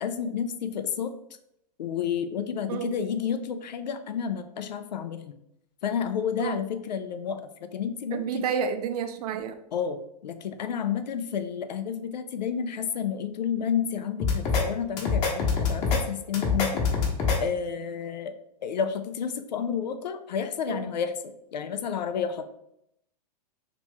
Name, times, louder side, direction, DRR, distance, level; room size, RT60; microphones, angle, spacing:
voice 1, 0.0-1.1 1.8-5.3 5.8-7.4 7.7-8.4 9.7-16.8 17.4-18.3 18.6-22.5, left 7 dB, 85° left, 9 dB, 0.5 m, -30 dB
voice 2, 8.1-9.5 20.7-20.8, right 7 dB, 65° right, 8 dB, 0.5 m, -30 dB
sound 1, 14.2-14.6 15.0-16.0 16.3-17.4, left 5 dB, 30° left, 1.0 m, -24 dB
3.0 x 2.9 x 3.4 m, 0.77 s
hypercardioid pair, 120°, 21 cm